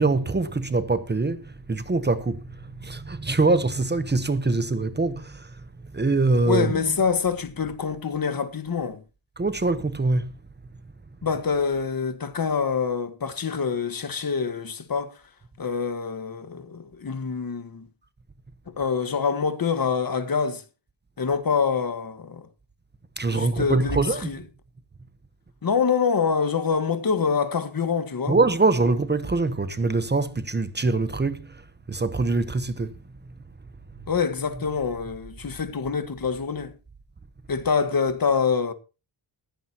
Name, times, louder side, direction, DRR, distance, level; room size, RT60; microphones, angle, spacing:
voice 1, 0.0-2.4 2.8-5.5 5.9-6.7 9.4-10.3 23.2-24.3 28.3-31.5 31.9-32.9, right 3 dB, 20° right, 1.0 m, -23 dB
voice 2, 6.4-9.0 11.2-15.2 15.6-17.9 18.7-20.6 21.2-22.5 23.3-24.4 25.6-28.4 34.1-36.7 37.5-38.7, left 5 dB, 45° left, 1.6 m, -25 dB
15.5 x 15.5 x 3.0 m
wide cardioid pair, 150°, 47 cm